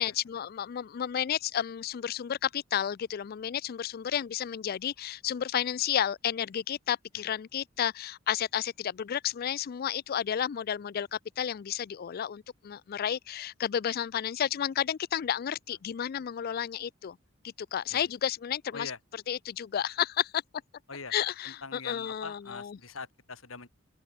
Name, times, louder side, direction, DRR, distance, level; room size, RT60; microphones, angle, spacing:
voice 1, 0.0-17.2 17.6-18.9 19.3-20.4 21.1-22.8, left 9 dB, 45° left, 0.3 m, -32 dB
voice 2, 21.4-23.7, left 4 dB, 75° left, 2.8 m, -43 dB
open air
head